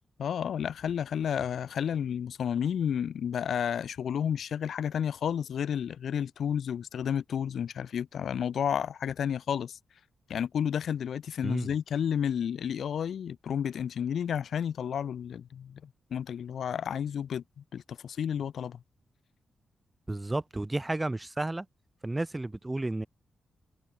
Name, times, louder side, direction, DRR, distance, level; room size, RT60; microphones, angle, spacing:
voice 1, 0.2-9.8 10.3-18.8, left 8 dB, 70° left, 0.9 m, -31 dB
voice 2, 11.4-11.7 20.1-21.7 22.0-23.1, right 2 dB, 20° right, 2.2 m, -32 dB
open air
cardioid pair, 65°, 0 cm